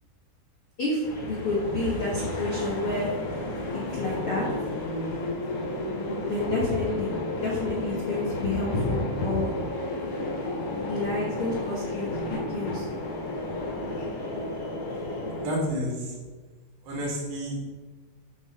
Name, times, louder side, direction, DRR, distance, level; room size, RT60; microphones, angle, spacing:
voice 1, 0.8-3.1 3.7-4.5 6.2-7.1 7.4-9.5 10.6-12.8, left 2 dB, 70° left, -4 dB, 1.3 m, -29 dB
sound 1, 1.0-15.5, left 2 dB, 55° left, 4.1 m, -32 dB
voice 2, 15.4-16.1 16.8-17.7, equal, 85° right, -3 dB, 4.6 m, -30 dB
11.0 x 6.4 x 4.2 m, 1.4 s
omnidirectional pair, 4.8 m